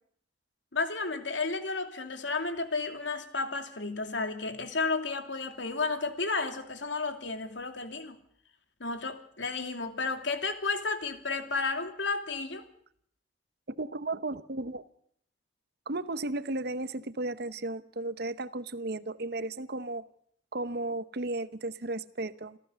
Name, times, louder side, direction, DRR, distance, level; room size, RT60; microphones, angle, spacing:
voice 1, 0.7-8.2 8.8-12.7, left 4 dB, 80° left, 2.6 m, -32 dB
voice 2, 13.7-14.8 15.9-20.0 20.5-22.6, right 2 dB, 60° right, 0.9 m, -34 dB
27.5 x 15.0 x 7.0 m
head